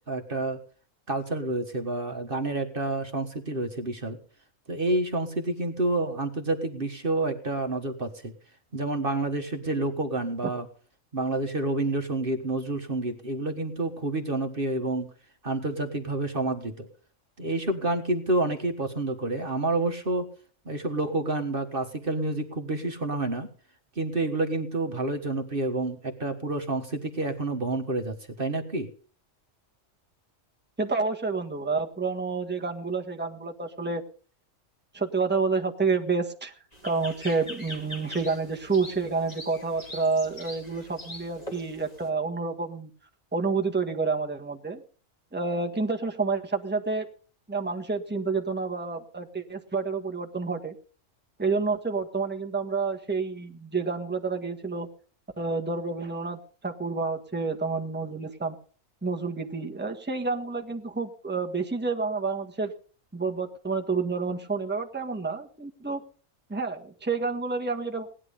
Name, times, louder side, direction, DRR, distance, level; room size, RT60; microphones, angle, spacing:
voice 1, 0.1-0.6 1.1-4.2 4.7-8.3 8.7-10.7 11.1-15.1 15.4-16.9 17.4-20.3 20.6-23.5 23.9-28.9, right 2 dB, 45° right, 6 dB, 1.7 m, -29 dB
voice 2, 30.8-34.0 34.9-36.5 36.8-42.9 43.3-44.8 45.3-47.1 47.5-50.7 51.4-54.9 55.4-58.5 59.0-62.7 63.1-66.0 66.5-68.1, right 4 dB, 10° right, 3 dB, 1.5 m, -29 dB
sound 1, 36.7-42.1, left 1 dB, 30° left, 3.3 m, -43 dB
18.0 x 11.0 x 5.4 m, 0.41 s
omnidirectional pair, 1.3 m